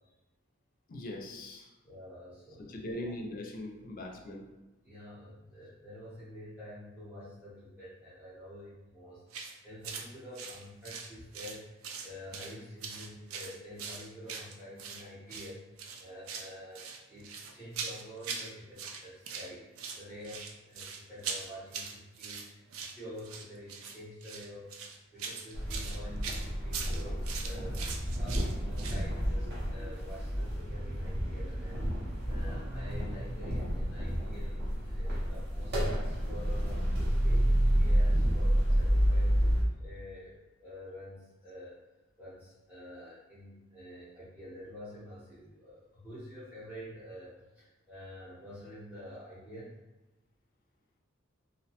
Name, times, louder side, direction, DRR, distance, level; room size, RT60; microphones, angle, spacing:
voice 1, 0.9-1.7 2.6-4.5, left 1 dB, 45° left, 1 dB, 0.4 m, -41 dB
voice 2, 1.8-3.1 4.8-27.8 28.2-41.8 42.2-49.8, equal, 5° right, -12 dB, 0.7 m, -48 dB
sound 1, 9.3-9.5 9.8-10.1 10.3-11.6 11.8-12.5 12.8-15.0 15.3-15.5 15.8-16.5 16.7-18.5 18.8-19.5 19.8-29.0, right 5 dB, 80° right, 0.4 m, -41 dB
sound 2, 25.5-39.6, equal, 55° right, 0.7 m, -30 dB
2.6 x 2.1 x 2.8 m, 1.0 s
head